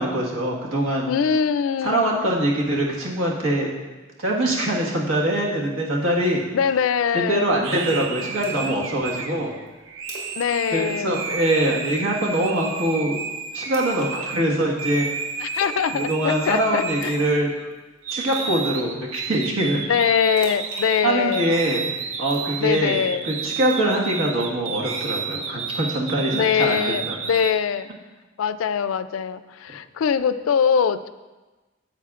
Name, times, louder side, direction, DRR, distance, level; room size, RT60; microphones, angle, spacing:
voice 1, 0.0-1.1 1.8-3.7 4.2-6.4 7.1-9.6 10.7-13.2 13.5-15.1 15.9-17.5 18.1-19.8 21.0-21.9 22.2-27.2, right 1 dB, 85° right, -2 dB, 1.6 m, -23 dB
voice 2, 1.1-2.2 6.5-7.6 10.4-11.2 15.4-17.1 19.9-21.6 22.6-23.3 26.3-27.9 28.4-31.1, left 7 dB, 80° left, 14 dB, 0.3 m, -23 dB
sound 1, 7.6-14.4 14.8-17.7 18.0-27.5, right 5 dB, 70° right, 0.6 m, -31 dB
Splash splatter, 8.4-8.8 9.1-9.2 9.7-9.8 10.0-10.5 10.7-10.9 11.3-11.6 12.5-12.9 13.7-14.6 15.5-15.8 16.1-16.5 17.0-17.4 17.7-17.8 18.3-18.6 20.4-21.6 22.3-23.2 23.7-24.0, right 2 dB, 35° right, 2.0 m, -40 dB
10.0 x 7.7 x 2.4 m, 1.2 s
head